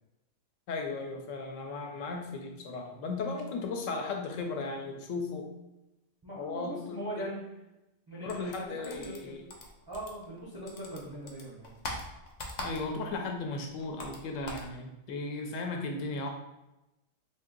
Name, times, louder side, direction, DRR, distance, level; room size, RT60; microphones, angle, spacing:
voice 1, 0.7-5.5 6.4-7.3 8.2-9.4 12.6-16.3, left 3 dB, 75° left, 3 dB, 0.9 m, -36 dB
voice 2, 6.2-7.4 8.1-9.3 9.9-11.7, right 1 dB, 35° right, -6 dB, 0.3 m, -40 dB
sound 1, 8.3-10.4 10.7-13.2 13.4-14.7, left 1 dB, 60° left, 0.4 m, -41 dB
2.7 x 2.4 x 3.7 m, 0.95 s
omnidirectional pair, 1.4 m